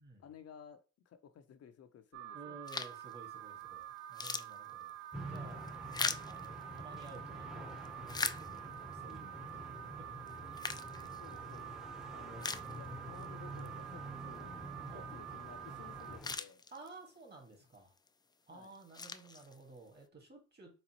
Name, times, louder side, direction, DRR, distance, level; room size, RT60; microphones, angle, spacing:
voice 1, 0.2-2.6 11.0-11.7 12.1-14.6 14.9-16.6 18.5-18.7, left 8 dB, 55° left, 0.6 m, -56 dB
Alarm, 2.1-16.2, right 12 dB, 70° right, 0.4 m, -48 dB
voice 2, 2.3-9.6 12.2-12.8 14.9-15.1 16.7-17.9 18.5-20.8, right 3 dB, 35° right, 1.8 m, -54 dB
sound 1, 2.7-3.1 3.6-3.7 4.0-7.2 7.7-8.9 9.5-9.6 10.3-11.6 12.0-12.1 12.4-13.3 13.6-13.7 15.7-15.8 16.0-17.1 17.8-18.1 18.6-19.9, left 4 dB, 15° left, 0.3 m, -41 dB
sound 2, 5.1-16.3, equal, ahead, 0.8 m, -48 dB
4.2 x 3.7 x 2.9 m
cardioid pair, 90°, 30 cm